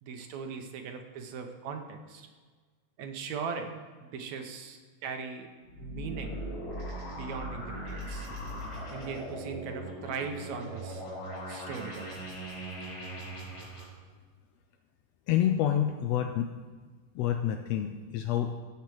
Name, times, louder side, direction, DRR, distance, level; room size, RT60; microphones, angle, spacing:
voice 1, 0.0-2.3 3.0-5.5 5.8-6.4 7.1-8.3 8.9-11.0 11.5-12.2, right 5 dB, 75° right, 5 dB, 2.1 m, -39 dB
sound 1, 5.6-13.8, equal, 55° left, 3.9 m, -39 dB
voice 2, 15.3-16.5 17.1-18.6, left 10 dB, 80° left, 6 dB, 1.5 m, -28 dB
14.5 x 5.8 x 4.7 m, 1.5 s
omnidirectional pair, 3.3 m